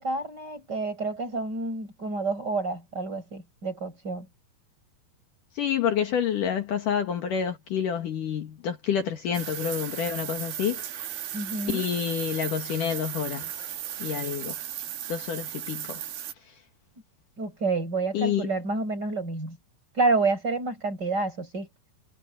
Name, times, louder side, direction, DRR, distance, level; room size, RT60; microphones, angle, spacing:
voice 1, 0.0-4.3 11.3-11.8 17.4-19.6 19.9-21.7, right 3 dB, 25° right, 6.1 m, -29 dB
voice 2, 5.5-11.2 11.7-13.6 14.0-14.6 15.1-16.0 18.1-18.5, left 8 dB, 60° left, 3.1 m, -28 dB
sound 1, 9.3-16.3, right 10 dB, 70° right, 3.5 m, -36 dB
omnidirectional pair, 4.4 m